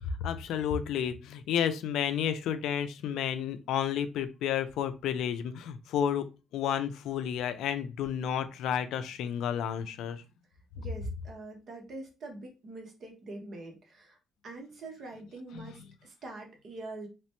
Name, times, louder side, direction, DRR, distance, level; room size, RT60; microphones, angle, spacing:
voice 1, 0.0-6.3 6.5-10.2 15.5-15.7, left 9 dB, 85° left, 10 dB, 0.3 m, -31 dB
voice 2, 10.8-14.2 14.4-17.1, right 2 dB, 60° right, 2 dB, 1.0 m, -44 dB
2.9 x 2.1 x 2.9 m, 0.29 s
cardioid pair, 90°, 0 cm